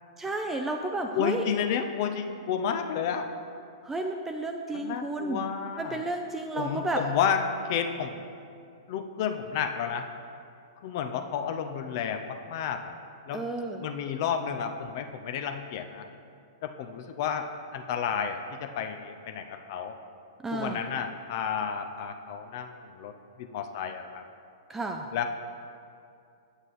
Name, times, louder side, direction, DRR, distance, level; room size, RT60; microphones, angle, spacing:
voice 1, 0.2-1.5 3.8-5.5 5.8-7.0 13.3-13.8 20.4-20.8 24.7-25.1, right 2 dB, 10° right, 3 dB, 0.4 m, -32 dB
voice 2, 1.2-3.3 4.7-6.0 6.5-8.2 8.9-10.1 10.8-13.0 13.3-13.4 13.8-16.1 16.6-20.0 20.5-23.1 23.4-24.2 25.1-25.3, left 7 dB, 50° left, 7 dB, 0.6 m, -31 dB
8.0 x 7.6 x 4.1 m, 2.4 s
hypercardioid pair, 110°, 2 cm